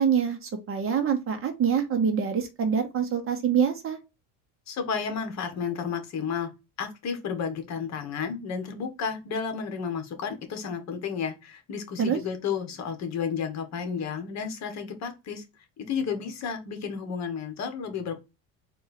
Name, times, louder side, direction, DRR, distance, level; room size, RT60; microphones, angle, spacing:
voice 1, 0.0-4.0 12.0-12.2, right 7 dB, 35° right, 1.0 m, -25 dB
voice 2, 4.7-6.5 6.8-15.4 15.8-18.1, left 6 dB, 45° left, 1.2 m, -32 dB
4.2 x 2.6 x 4.0 m
cardioid pair, 140°, 37 cm